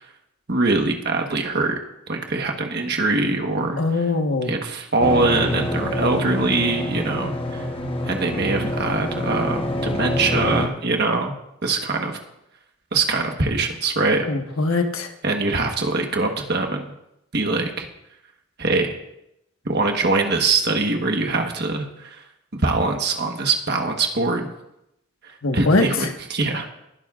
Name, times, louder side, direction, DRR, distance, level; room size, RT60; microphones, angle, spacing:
voice 1, 0.5-1.7 2.1-3.8 4.5-7.6 8.1-11.3 11.6-12.2 12.9-14.2 15.2-16.8 17.3-17.9 18.6-19.0 19.6-22.2 22.5-24.5 25.5-26.7, right 3 dB, 50° right, 3 dB, 1.3 m, -23 dB
voice 2, 3.8-4.6 14.3-15.1 25.4-26.1, left 3 dB, 80° left, 4 dB, 1.4 m, -22 dB
sound 1, 5.0-10.7, left 1 dB, 25° left, 1.1 m, -26 dB
21.0 x 12.0 x 2.5 m, 0.82 s
head